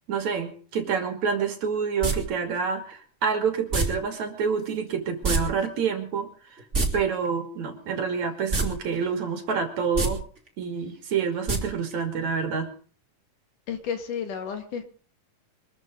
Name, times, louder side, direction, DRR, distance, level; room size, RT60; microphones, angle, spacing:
voice 1, 0.1-6.6 6.9-10.2 10.6-12.7, right 6 dB, 60° right, 3.6 m, -28 dB
sound 1, 2.0-2.1 3.7-3.8 5.2-5.4 5.7-5.8 6.6-6.9 8.5-8.7 9.0-9.1 9.8-10.1 11.5-11.6 11.9-12.0, right 3 dB, 20° right, 3.1 m, -24 dB
voice 2, 13.7-14.8, left 7 dB, 70° left, 3.5 m, -32 dB
24.0 x 13.5 x 3.9 m
omnidirectional pair, 3.8 m